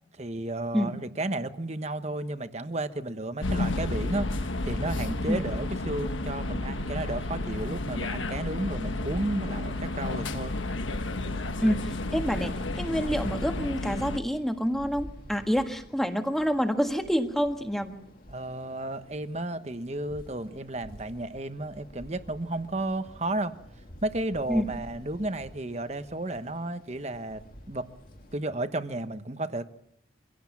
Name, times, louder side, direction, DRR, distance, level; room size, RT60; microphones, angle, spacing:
voice 1, 0.2-10.6 11.2-11.4 18.3-23.5 24.0-27.9 28.3-29.7, right 2 dB, 35° right, 10 dB, 1.1 m, -33 dB
sound 1, 3.4-14.2, left 2 dB, 90° left, 1.4 m, -31 dB
sound 2, 10.2-28.4, equal, 50° left, 2.4 m, -50 dB
voice 2, 11.6-18.0 24.5-24.7, equal, ahead, 5 dB, 1.6 m, -27 dB
24.5 x 16.5 x 7.3 m, 0.75 s
head